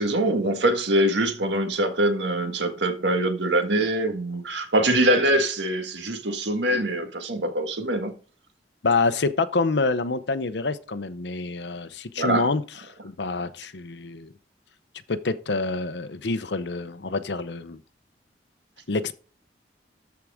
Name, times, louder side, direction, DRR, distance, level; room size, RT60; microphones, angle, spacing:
voice 1, 0.0-8.1 12.2-12.5, right 1 dB, 90° right, 1.7 m, -23 dB
voice 2, 8.8-12.6 13.0-14.3 15.1-17.8 18.9-19.1, left 3 dB, 80° left, 0.8 m, -27 dB
13.5 x 4.8 x 3.7 m
head